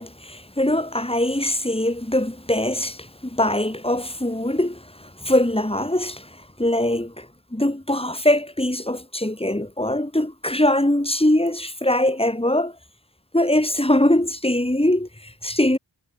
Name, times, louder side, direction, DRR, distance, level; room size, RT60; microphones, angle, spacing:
voice 1, 0.0-6.3 6.6-7.3 7.5-12.7 13.3-15.8, left 1 dB, 15° left, 4.6 m, -22 dB
wide cardioid pair, 70°, 43 cm